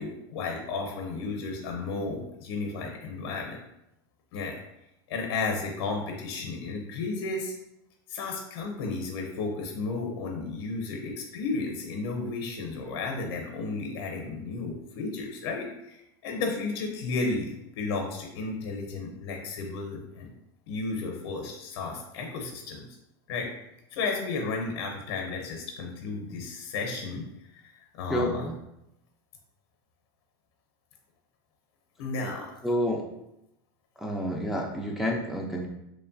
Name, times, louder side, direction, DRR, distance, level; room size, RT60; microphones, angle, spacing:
voice 1, 0.0-3.6 4.3-4.6 5.1-7.5 8.1-20.3 20.7-22.8 23.3-23.5 23.9-27.2 27.5-28.5 32.0-32.5, left 3 dB, 80° left, 2 dB, 0.6 m, -33 dB
voice 2, 28.1-28.6 32.6-33.0 34.0-35.7, equal, ahead, -2 dB, 0.3 m, -29 dB
3.0 x 2.1 x 2.5 m, 0.83 s
supercardioid pair, 120°, 13 cm